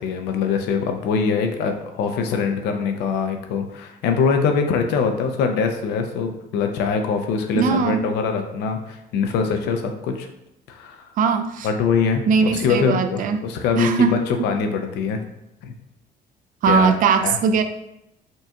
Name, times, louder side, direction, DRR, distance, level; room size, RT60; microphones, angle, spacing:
voice 1, 0.0-10.3 10.7-11.0 11.6-15.2 15.6-15.7 16.6-16.9 17.2-17.4, left 5 dB, 90° left, 5 dB, 0.6 m, -23 dB
voice 2, 7.6-8.0 11.2-11.7 12.3-13.4 13.8-14.5 16.6-17.6, right 6 dB, 55° right, 8 dB, 0.4 m, -20 dB
5.3 x 2.4 x 2.8 m, 0.84 s
cardioid pair, 110°, 17 cm